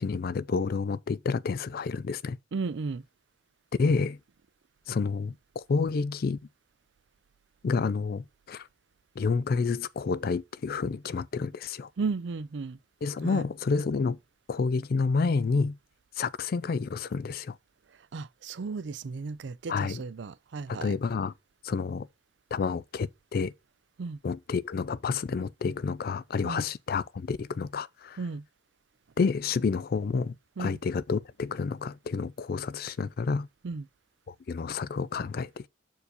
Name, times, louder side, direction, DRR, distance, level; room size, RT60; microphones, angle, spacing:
voice 1, 0.0-2.4 3.8-4.2 4.9-6.4 7.6-8.7 9.2-11.9 13.0-14.2 14.5-15.8 16.2-17.6 19.7-20.0 20.7-21.3 21.6-22.1 22.5-23.5 24.2-28.2 29.2-33.5 34.3-35.7, left 4 dB, 55° left, 0.4 m, -29 dB
voice 2, 2.5-3.0 12.0-12.8 13.2-13.4 18.1-20.9 24.0-24.2 26.4-26.7 28.2-28.4 30.6-30.8 33.6-33.8, right 4 dB, 70° right, 0.4 m, -34 dB
6.7 x 4.7 x 4.2 m
head